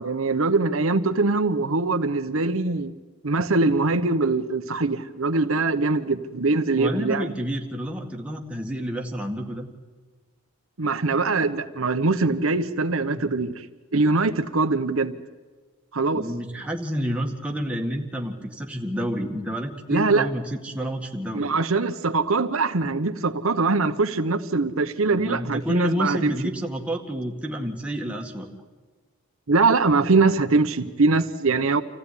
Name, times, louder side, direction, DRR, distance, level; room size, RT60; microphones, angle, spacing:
voice 1, 0.0-2.9 3.2-7.3 10.8-13.7 13.9-15.2 15.9-16.3 19.9-20.3 21.3-26.3 29.5-31.8, right 3 dB, 75° right, 9 dB, 1.0 m, -22 dB
voice 2, 6.8-9.7 13.1-13.4 16.1-21.5 25.1-28.5, equal, 5° right, 1 dB, 2.0 m, -29 dB
27.0 x 15.0 x 9.9 m, 1.4 s
head